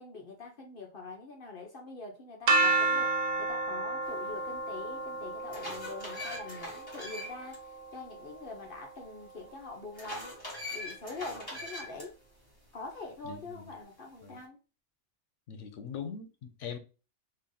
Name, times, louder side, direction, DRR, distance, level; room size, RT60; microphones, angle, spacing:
voice 1, 0.0-10.4 10.7-12.2 12.7-14.6, left 3 dB, 50° left, 0.9 m, -44 dB
sound 1, 2.5-8.4, right 3 dB, 70° right, 0.9 m, -31 dB
sound 2, 4.6-4.7 5.2-7.6 7.9-8.0 9.9-12.1, left 1 dB, 20° left, 1.6 m, -41 dB
voice 2, 13.2-13.7 14.2-14.4 15.5-16.8, left 7 dB, 85° left, 1.0 m, -41 dB
3.3 x 2.5 x 3.8 m
omnidirectional pair, 1.2 m